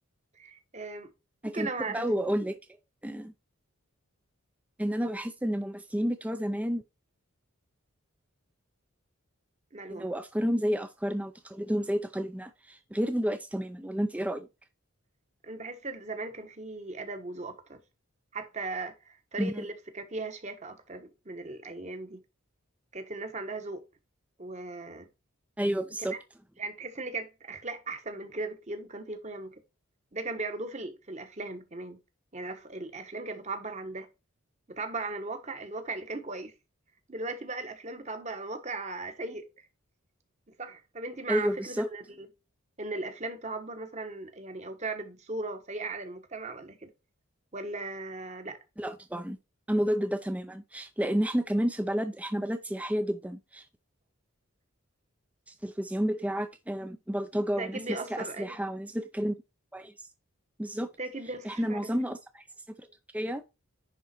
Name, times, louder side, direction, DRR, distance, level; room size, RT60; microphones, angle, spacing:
voice 1, 0.3-1.1 1.4-2.1 9.7-10.1 15.4-17.8 18.3-22.2 22.9-23.8 24.4-25.1 26.1-26.2 26.6-29.6 30.1-32.0 32.3-34.1 34.7-36.5 37.1-39.7 40.6-42.3 42.8-46.9 47.5-48.6 57.5-58.6 61.0-61.9, right 3 dB, 30° right, 1.2 m, -38 dB
voice 2, 1.4-2.6 3.0-3.3 4.8-6.8 9.9-14.5 19.4-19.6 25.6-26.1 41.3-41.9 48.8-49.4 49.7-53.6 55.5-57.8 58.1-59.3 59.7-59.9 60.6-60.9 61.4-62.9 63.1-63.4, equal, 5° right, 0.5 m, -30 dB
10.0 x 3.9 x 4.3 m
head